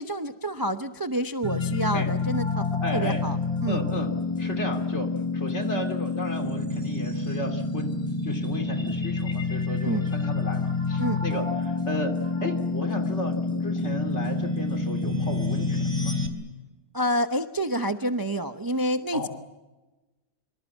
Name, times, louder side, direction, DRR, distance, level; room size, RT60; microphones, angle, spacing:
voice 1, 0.0-2.6 2.9-3.8 9.8-10.1 11.0-11.2 16.9-19.3, right 1 dB, 25° right, 8 dB, 0.4 m, -28 dB
sound 1, 1.4-16.3, left 3 dB, 20° left, 3.3 m, -28 dB
voice 2, 2.8-3.2 3.7-4.1 4.4-16.2 19.1-19.3, left 1 dB, 45° left, 5 dB, 3.3 m, -34 dB
25.5 x 25.0 x 7.4 m, 1.1 s
omnidirectional pair, 1.7 m